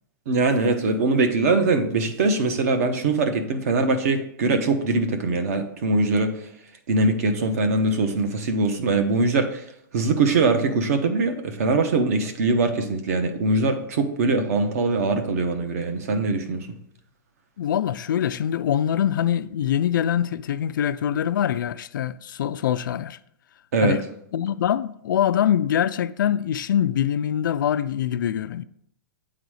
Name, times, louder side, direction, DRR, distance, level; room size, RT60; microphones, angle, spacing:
voice 1, 0.3-6.3 6.9-9.6 9.9-16.7 23.7-24.0, right 3 dB, 45° right, 0.9 m, -22 dB
voice 2, 17.6-23.2 23.8-24.0 24.3-28.6, left 10 dB, 70° left, 0.4 m, -24 dB
8.7 x 4.0 x 4.8 m
hypercardioid pair, 180°, 11 cm